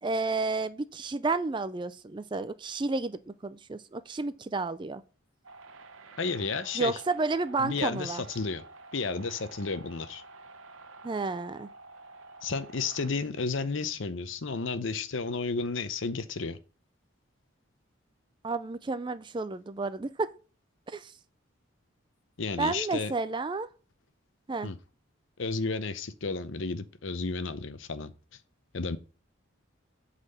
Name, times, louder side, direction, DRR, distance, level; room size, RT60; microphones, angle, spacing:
voice 1, 0.0-5.0 6.7-8.2 11.0-11.7 18.4-20.3 20.9-21.1 22.6-23.7 24.5-24.7, right 3 dB, 20° right, 0.4 m, -31 dB
sound 1, 5.4-13.1, right 3 dB, 75° right, 0.8 m, -50 dB
voice 2, 6.2-7.0 7.6-8.6 8.9-10.2 12.4-16.6 22.4-23.1 24.6-24.8 25.4-28.1 28.7-29.0, left 4 dB, 65° left, 0.7 m, -32 dB
8.1 x 4.2 x 5.5 m
head